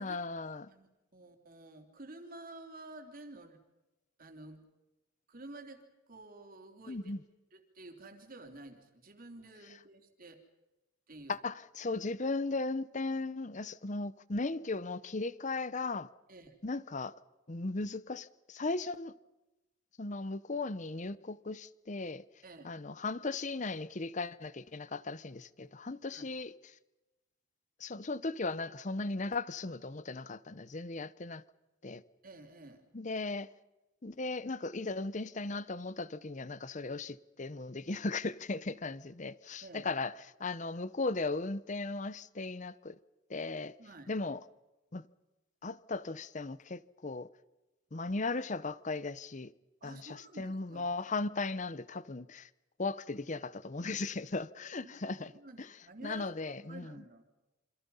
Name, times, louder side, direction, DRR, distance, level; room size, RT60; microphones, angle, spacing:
voice 1, 0.0-0.7 6.9-7.2 11.3-16.1 16.6-17.1 17.5-19.1 20.0-22.2 22.6-26.5 27.8-31.4 31.8-32.0 32.9-33.5 34.0-43.0 43.3-43.8 44.1-44.4 44.9-45.1 45.6-47.3 47.9-49.5 49.8-52.5 52.8-55.3 55.6-55.8 56.0-57.0, left 3 dB, 40° left, 0.8 m, -37 dB
voice 2, 0.7-3.6 4.2-4.6 5.3-7.1 7.5-10.4 11.1-11.3 16.3-16.5 22.4-22.7 26.1-26.2 32.2-32.8 39.6-39.9 43.8-44.1 49.8-50.9 54.8-57.2, right 2 dB, 45° right, 3.2 m, -51 dB
28.0 x 26.0 x 5.6 m
head